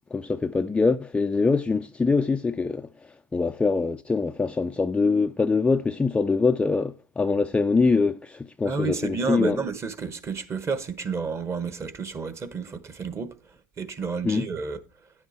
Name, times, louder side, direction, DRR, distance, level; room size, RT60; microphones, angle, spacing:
voice 1, 0.1-2.9 3.3-9.6 14.2-14.5, left 4 dB, 10° left, 0.4 m, -23 dB
voice 2, 8.7-13.3 13.8-14.8, right 5 dB, 25° right, 1.1 m, -30 dB
10.0 x 7.9 x 4.2 m
hypercardioid pair, 105°, 10 cm